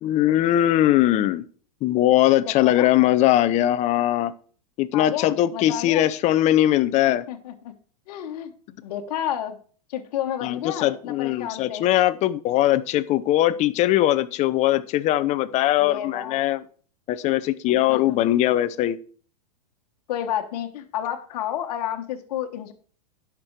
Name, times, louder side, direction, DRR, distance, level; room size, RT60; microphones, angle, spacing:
voice 1, 0.0-1.4 1.8-4.3 4.8-7.2 10.4-16.6 17.1-19.0, left 13 dB, 35° left, 15 dB, 0.6 m, -20 dB
voice 2, 2.5-2.9 4.9-6.0 7.3-7.7 8.1-9.6 9.9-11.8 15.8-16.4 17.7-18.2 20.1-22.7, left 10 dB, 65° left, 4 dB, 1.3 m, -31 dB
10.5 x 6.0 x 4.6 m, 0.42 s
hypercardioid pair, 125°, 21 cm